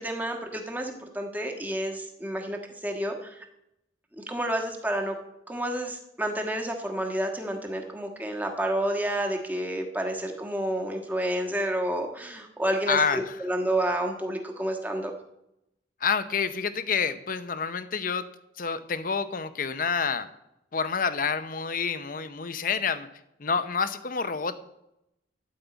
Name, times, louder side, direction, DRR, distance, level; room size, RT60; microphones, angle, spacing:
voice 1, 0.0-2.6 2.8-3.3 4.2-5.1 5.5-15.1, right 1 dB, 10° right, 3 dB, 1.4 m, -30 dB
voice 2, 12.9-13.4 16.0-18.3 18.6-20.3 20.7-23.1 23.4-24.6, left 5 dB, 50° left, 12 dB, 0.7 m, -28 dB
12.5 x 5.5 x 8.2 m, 0.84 s
head